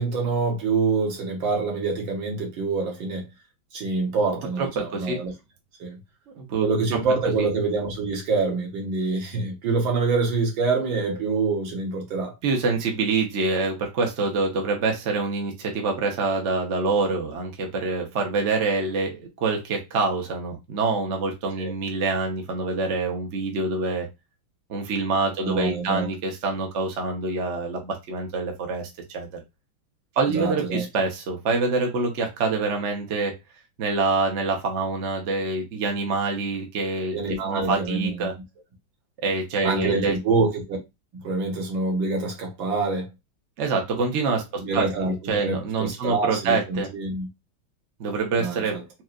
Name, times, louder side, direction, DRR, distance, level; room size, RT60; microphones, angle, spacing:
voice 1, 0.0-3.2 3.7-5.3 5.8-6.0 6.6-12.3 21.6-21.7 25.4-26.1 30.3-30.8 37.1-38.3 39.6-40.8 41.1-43.1 44.6-47.3 48.4-48.8, right 3 dB, 70° right, 1.9 m, -26 dB
voice 2, 4.6-5.2 6.3-6.7 7.4-7.5 12.4-24.1 24.7-28.9 29.1-29.4 30.2-33.3 33.8-37.2 37.4-38.3 39.2-40.1 43.6-44.4 44.7-46.9 48.0-48.8, right 3 dB, 45° right, 1.0 m, -26 dB
4.5 x 3.0 x 2.4 m
omnidirectional pair, 2.3 m